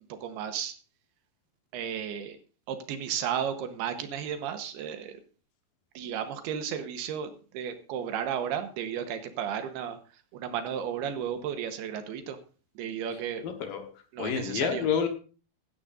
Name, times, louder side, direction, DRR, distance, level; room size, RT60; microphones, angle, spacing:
voice 1, 0.1-0.7 1.7-2.4 2.7-5.2 5.9-10.0 10.3-12.4 12.8-13.5 14.1-14.8, right 8 dB, 80° right, 8 dB, 3.1 m, -33 dB
voice 2, 13.4-13.9 14.2-15.1, left 7 dB, 65° left, 6 dB, 2.7 m, -28 dB
16.0 x 13.0 x 2.6 m, 0.36 s
omnidirectional pair, 4.7 m